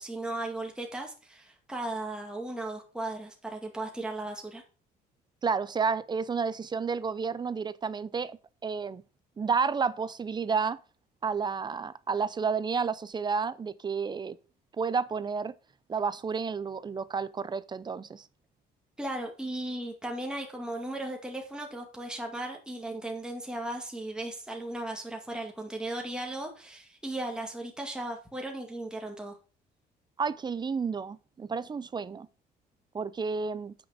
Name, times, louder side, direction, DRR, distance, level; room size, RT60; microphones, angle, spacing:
voice 1, 0.0-4.6 19.0-29.4, right 1 dB, 5° right, 2.0 m, -36 dB
voice 2, 5.4-9.0 9.4-10.8 11.2-14.4 14.8-15.5 15.9-18.3 30.2-32.3 32.9-33.7, right 5 dB, 25° right, 0.6 m, -31 dB
9.3 x 6.1 x 4.9 m
cardioid pair, 110°, 17 cm